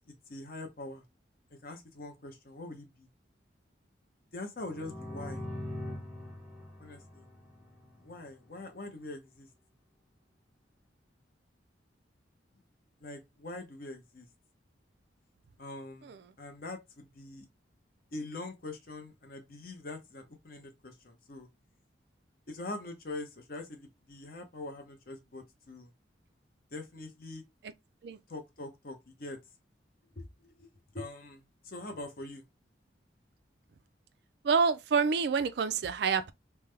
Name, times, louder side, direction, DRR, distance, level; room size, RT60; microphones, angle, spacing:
voice 1, 0.1-1.0 1.5-3.1 4.3-5.4 6.8-7.3 8.0-9.5 13.0-14.3 15.6-17.5 18.1-21.5 22.5-25.9 26.7-27.4 28.3-29.4 30.1-30.2 30.6-30.7 30.9-32.4, left 2 dB, 50° left, 0.8 m, -43 dB
sound 1, 4.6-8.3, left 1 dB, 5° right, 0.8 m, -42 dB
voice 2, 34.4-36.3, right 5 dB, 60° right, 0.3 m, -27 dB
3.3 x 2.1 x 3.2 m
head